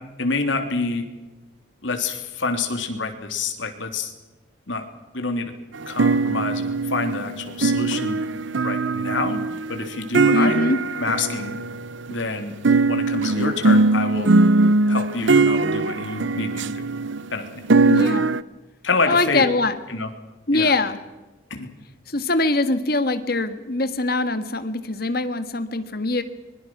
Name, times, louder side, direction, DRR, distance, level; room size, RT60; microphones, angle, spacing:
voice 1, 0.2-1.0 1.8-4.1 4.7-4.8 5.1-5.5 5.9-8.2 8.6-9.4 9.7-10.6 11.0-11.6 12.1-12.5 12.9-14.3 14.9-16.9 17.3-17.5 18.8-19.4 19.9-20.1 20.5-20.7 21.5-21.7, left 3 dB, 70° left, 5 dB, 3.2 m, -27 dB
sound 1, 5.7-12.1 12.6-18.4, right 3 dB, 70° right, 0.7 m, -20 dB
voice 2, 10.3-10.8 17.9-18.2 19.1-19.8 20.5-21.0 22.1-26.2, left 2 dB, 50° left, 10 dB, 1.8 m, -22 dB
25.0 x 22.0 x 6.2 m, 1.1 s
head